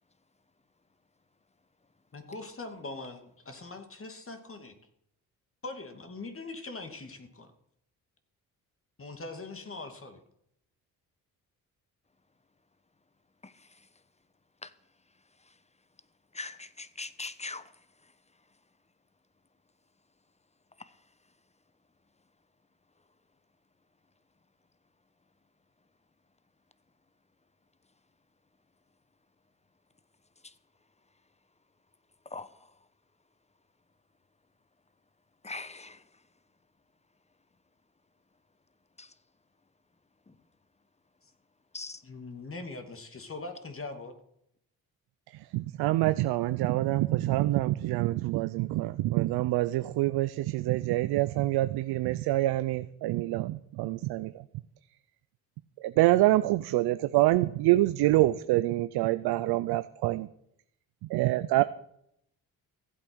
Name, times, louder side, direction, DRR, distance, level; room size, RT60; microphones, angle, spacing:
voice 1, 2.1-4.7 5.6-7.5 9.0-10.2 41.2-41.3 42.0-44.1, left 3 dB, 35° left, 2.5 m, -42 dB
voice 2, 16.3-17.7 20.8-20.9 32.3-32.5 35.4-36.0 39.0-39.1 41.7-42.0, left 3 dB, 15° left, 1.0 m, -40 dB
voice 3, 45.5-54.3 55.8-60.3 61.1-61.6, right 17 dB, 85° right, 0.6 m, -26 dB
15.0 x 8.4 x 6.3 m
supercardioid pair, 65°, 38 cm